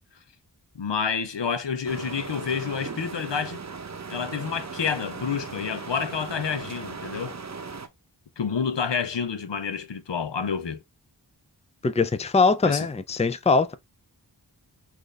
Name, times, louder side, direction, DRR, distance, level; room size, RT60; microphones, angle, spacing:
voice 1, 0.7-3.6 4.1-7.4 8.4-10.8 12.6-12.9, left 6 dB, 80° left, 0.7 m, -29 dB
sound 1, 1.9-7.9, right 5 dB, 40° right, 0.7 m, -38 dB
voice 2, 11.8-13.7, left 4 dB, 15° left, 0.4 m, -22 dB
6.1 x 2.6 x 3.3 m
wide cardioid pair, 40°, 43 cm